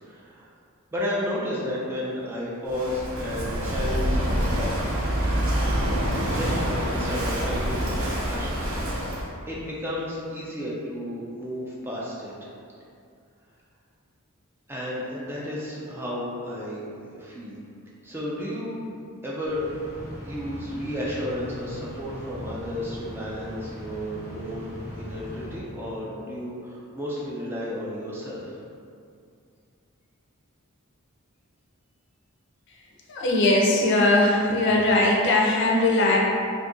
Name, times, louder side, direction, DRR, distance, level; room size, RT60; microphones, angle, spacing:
voice 1, 0.0-0.5 0.9-5.0 6.3-9.2 9.5-12.3 14.7-17.6 18.0-18.9 19.2-19.7 20.2-28.6, left 1 dB, 10° right, -6 dB, 0.4 m, -33 dB
Walk footsteps / Wind / Waves surf, 2.7-9.3, equal, 65° right, 0.6 m, -26 dB
sound 1, 19.5-26.3, equal, 30° right, 0.8 m, -39 dB
voice 2, 33.1-36.2, left 2 dB, 55° left, -2 dB, 0.5 m, -20 dB
2.7 x 2.4 x 3.6 m, 2.4 s
head